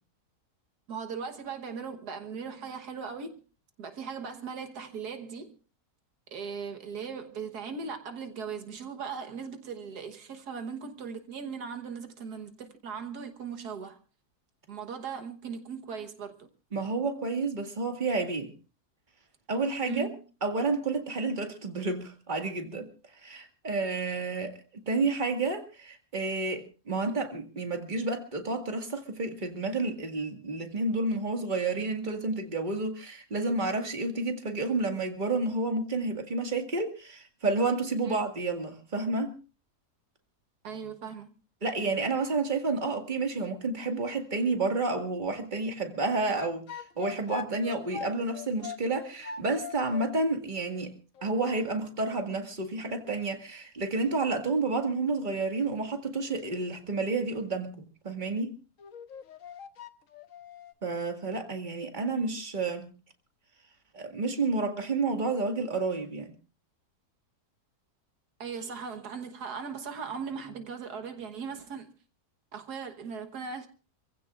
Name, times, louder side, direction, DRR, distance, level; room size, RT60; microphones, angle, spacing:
voice 1, 0.9-3.4 3.8-5.6 6.3-14.0 14.7-16.5 19.8-20.2 38.0-38.2 40.6-41.3 68.4-71.9 72.5-73.7, right 6 dB, 80° right, 1.8 m, -38 dB
voice 2, 16.7-18.5 19.5-20.1 20.4-22.9 23.2-39.3 41.6-50.9 51.2-58.5 60.8-62.9 63.9-66.3, right 3 dB, 30° right, 2.0 m, -30 dB
sound 1, 46.3-50.1 51.1-51.3 58.8-60.7, left 7 dB, 60° left, 1.3 m, -41 dB
28.0 x 15.5 x 2.5 m
omnidirectional pair, 1.7 m